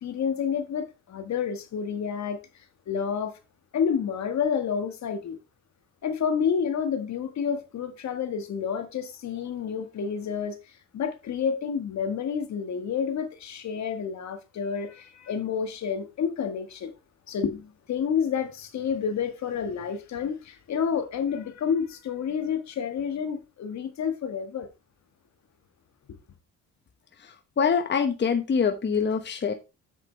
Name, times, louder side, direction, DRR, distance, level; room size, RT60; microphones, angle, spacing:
voice 1, 0.0-2.4 2.9-3.3 3.7-5.4 6.0-10.6 10.9-16.9 17.3-24.7 26.1-26.2, left 7 dB, 65° left, 1.6 m, -29 dB
voice 2, 27.2-29.5, left 6 dB, 35° left, 1.1 m, -25 dB
7.7 x 7.4 x 3.3 m
cardioid pair, 90°, 30 cm